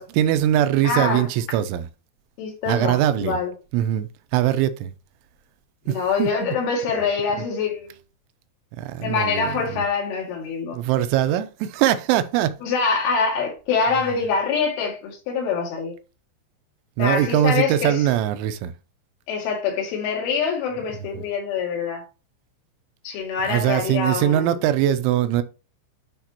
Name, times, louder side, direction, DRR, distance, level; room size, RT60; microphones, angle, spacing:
voice 1, 0.0-1.9 2.7-3.4 3.7-4.9 5.9-6.5 8.8-9.8 10.7-12.6 17.0-18.7 23.4-25.4, right 12 dB, 85° right, 3.0 m, -22 dB
voice 2, 0.8-1.2 2.4-3.5 5.9-7.9 9.0-10.8 12.6-15.9 17.0-18.0 19.3-22.0 23.0-24.6, left 5 dB, 80° left, 4.6 m, -25 dB
11.5 x 4.5 x 2.9 m
omnidirectional pair, 5.5 m